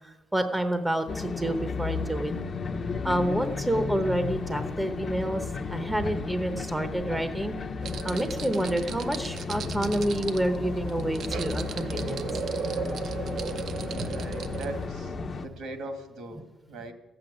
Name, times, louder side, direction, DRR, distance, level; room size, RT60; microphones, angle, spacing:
voice 1, 0.0-2.3 3.0-7.6 8.0-12.2 15.2-15.4, right 1 dB, 5° right, 8 dB, 0.8 m, -29 dB
sound 1, 1.1-15.5, left 4 dB, 30° left, 0.8 m, -34 dB
sound 2, 7.8-14.9, right 7 dB, 50° right, 0.7 m, -36 dB
voice 2, 14.0-15.1 15.4-16.9, right 2 dB, 70° right, 7 dB, 2.2 m, -40 dB
14.0 x 7.9 x 10.0 m, 1.0 s
cardioid pair, 165°, 0 cm